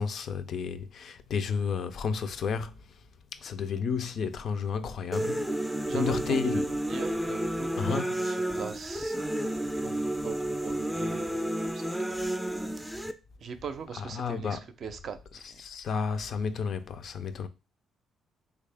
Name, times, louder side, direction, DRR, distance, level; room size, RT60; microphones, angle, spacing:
voice 1, 0.0-2.7 3.3-6.7 7.8-8.2 14.0-14.6 15.4-17.5, left 6 dB, 60° left, 0.4 m, -32 dB
sound 1, 5.1-13.1, right 1 dB, 5° right, 0.4 m, -31 dB
voice 2, 5.9-9.2 9.8-12.2 13.4-15.2 15.5-15.6, right 6 dB, 60° right, 0.5 m, -41 dB
3.4 x 2.4 x 3.4 m
cardioid pair, 90°, 0 cm